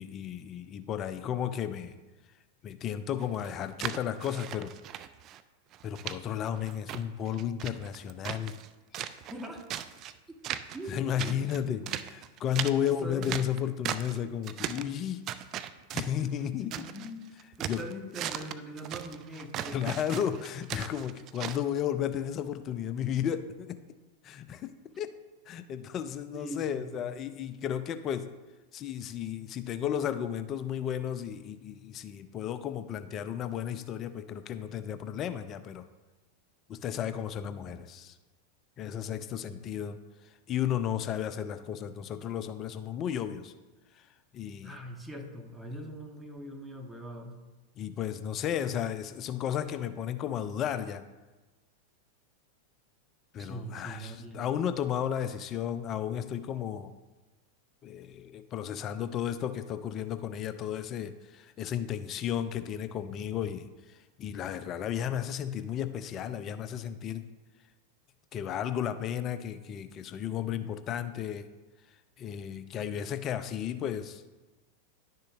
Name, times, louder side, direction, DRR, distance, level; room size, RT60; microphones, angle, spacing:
voice 1, 0.0-1.9 2.6-4.7 5.8-8.6 8.9-9.1 10.9-11.8 12.1-15.2 15.9-16.7 17.6-17.8 19.7-23.8 24.2-25.1 25.5-28.3 28.7-35.8 36.7-38.2 38.8-40.0 40.5-43.5 44.0-44.1 44.3-44.8 47.8-51.0 53.3-56.9 57.8-67.3 68.3-71.5 72.2-74.2, left 9 dB, 30° left, 11 dB, 0.5 m, -33 dB
sound 1, 3.2-5.4 5.7-6.2 6.6-8.7 8.9-10.1 10.4-10.9 11.2-14.2 14.4-14.9 15.3-17.1 17.4-21.6, right 11 dB, 35° right, 0.4 m, -38 dB
voice 2, 9.3-9.6 10.7-12.0 12.8-13.3 16.6-17.3 17.6-19.8 26.3-27.1 39.4-39.6 44.6-47.4 53.4-54.4, equal, 5° right, 2 dB, 1.0 m, -42 dB
11.0 x 6.6 x 2.5 m, 1.1 s
figure-of-eight pair, 90°, 0 cm